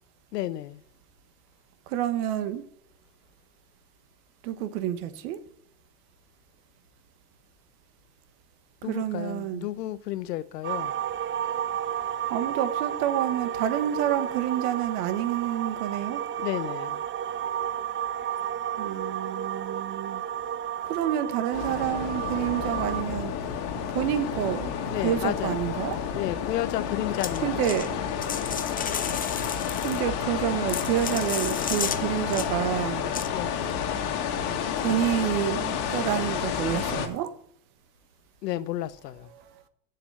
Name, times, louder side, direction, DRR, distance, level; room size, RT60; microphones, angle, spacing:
voice 1, 0.3-0.8 8.8-10.9 16.4-17.0 24.9-25.6 26.1-27.8 33.3-33.6 38.4-39.3, left 14 dB, 90° left, 0.8 m, -32 dB
voice 2, 1.9-2.6 4.4-5.4 8.9-9.7 12.3-16.2 18.7-20.2 20.8-23.3 23.9-24.7 25.0-26.0 27.4-28.0 29.8-33.0 34.8-37.3 39.3-39.5, right 11 dB, 70° right, 1.3 m, -28 dB
sound 1, 10.6-23.0, right 9 dB, 25° right, 0.6 m, -32 dB
sound 2, 21.5-37.1, left 8 dB, 60° left, 1.8 m, -30 dB
sound 3, 27.2-27.9 28.2-30.0 30.5-32.0 32.3-32.5 33.1-33.3, left 7 dB, 20° left, 0.6 m, -33 dB
7.5 x 6.9 x 7.7 m
hypercardioid pair, 100°, 47 cm